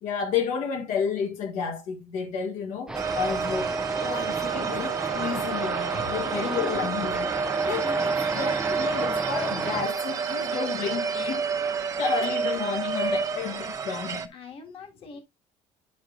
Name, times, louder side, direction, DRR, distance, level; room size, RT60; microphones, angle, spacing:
voice 1, 0.0-7.3 7.6-11.4 11.7-14.3, left 6 dB, 75° left, 2.0 m, -31 dB
sound 1, 2.9-9.9, right 2 dB, 5° right, 0.4 m, -34 dB
sound 2, 2.9-14.3, right 5 dB, 25° right, 0.9 m, -29 dB
voice 2, 5.9-6.9 7.8-8.2 12.6-13.7 14.3-15.2, left 4 dB, 45° left, 1.8 m, -43 dB
10.0 x 6.4 x 2.5 m
cardioid pair, 170°, 13 cm